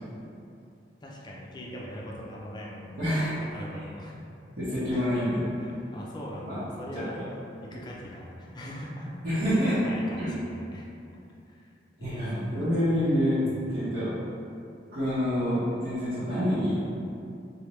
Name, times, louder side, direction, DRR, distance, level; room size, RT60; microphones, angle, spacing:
voice 1, 1.0-3.0 3.4-4.2 4.9-5.0 5.6-7.2 7.6-9.1 9.5-11.2 11.4-11.7 12.0-12.4 13.4-13.8, equal, 25° left, -3 dB, 0.5 m, -41 dB
voice 2, 3.0-3.4 4.6-5.4 6.5-6.6 9.2-9.8 10.2-10.3 12.0-13.4 13.7-14.1 14.9-16.8, equal, 55° right, -17 dB, 1.2 m, -27 dB
3.3 x 2.8 x 3.1 m, 2.6 s
head